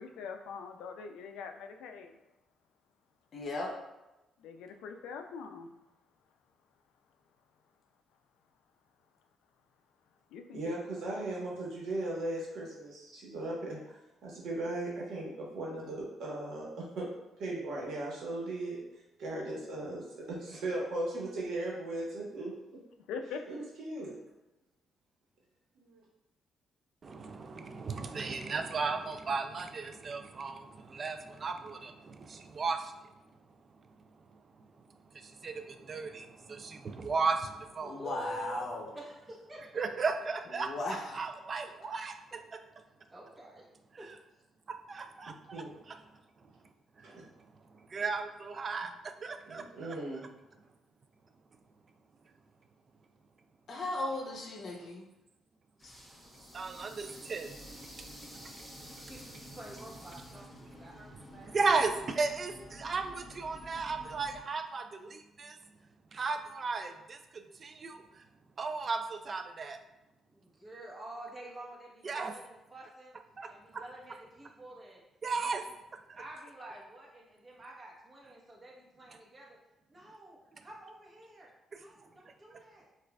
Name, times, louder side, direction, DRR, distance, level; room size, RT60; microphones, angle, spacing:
voice 1, 0.0-2.2 4.4-5.7 10.3-10.7 23.1-23.4, left 5 dB, 90° left, 6 dB, 0.3 m, -43 dB
voice 2, 3.3-3.8 37.9-38.9 40.5-41.2 53.7-55.1 55.8-55.9, left 2 dB, 55° left, 0 dB, 0.7 m, -37 dB
voice 3, 10.5-13.8 14.2-17.1 17.4-18.8 19.2-22.5 23.5-24.2 25.8-26.0 45.3-45.7 47.0-47.2 49.5-50.3, right 2 dB, 75° right, -3 dB, 1.1 m, -37 dB
voice 4, 27.0-32.9 35.2-37.9 39.8-40.7 41.1-42.1 44.9-45.6 47.9-50.0 56.5-57.5 58.4-58.5 61.5-65.6 66.1-68.0 68.6-69.8 72.0-72.3 73.4-73.5 75.2-75.6 76.1-76.2, right 4 dB, 40° right, 7 dB, 0.3 m, -35 dB
voice 5, 37.8-38.6 38.9-40.1 43.1-43.7 44.0-44.1 45.2-45.3 58.9-59.2 59.5-61.8 70.3-73.1 73.5-75.0 75.4-75.7 76.1-79.6 79.9-82.9, right 1 dB, 25° right, -4 dB, 1.0 m, -49 dB
sound 1, 55.8-64.4, equal, 5° right, 0.8 m, -50 dB
4.5 x 2.4 x 2.2 m, 0.98 s
cardioid pair, 90°, 0 cm